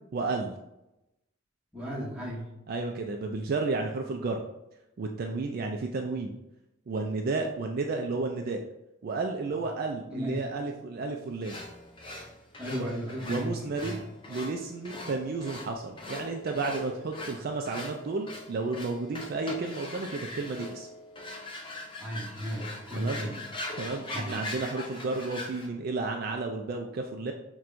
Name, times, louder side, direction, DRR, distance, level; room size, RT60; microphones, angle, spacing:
voice 1, 0.1-0.5 2.7-4.4 5.0-6.3 6.9-8.6 9.0-11.6 12.7-12.9 13.2-20.9 23.0-23.2 23.8-27.3, right 3 dB, 50° right, 2 dB, 0.3 m, -32 dB
voice 2, 1.7-2.5 10.1-10.4 12.6-13.6 13.8-14.0 22.0-23.4 24.1-24.4, equal, 5° right, -7 dB, 1.1 m, -35 dB
sound 1, 11.4-25.7, left 2 dB, 25° left, 0.5 m, -41 dB
5.8 x 2.2 x 2.5 m, 0.90 s
head